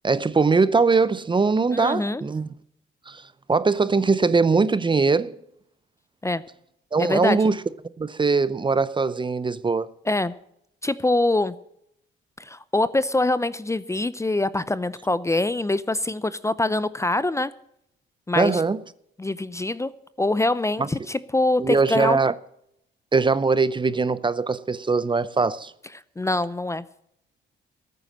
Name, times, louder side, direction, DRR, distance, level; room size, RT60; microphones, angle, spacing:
voice 1, 0.0-2.5 3.1-3.2 3.5-5.4 6.9-7.6 8.0-9.9 18.4-18.8 20.8-20.9 21.6-22.3 23.1-25.7, right 4 dB, 25° right, 0.7 m, -21 dB
voice 2, 1.7-2.2 6.2-6.4 7.0-7.4 10.1-10.3 10.8-11.5 12.4-17.5 18.3-18.6 19.2-19.9 20.2-22.2 26.2-26.8, left 2 dB, 15° left, 0.6 m, -24 dB
14.0 x 9.4 x 7.4 m
cardioid pair, 90°, 20 cm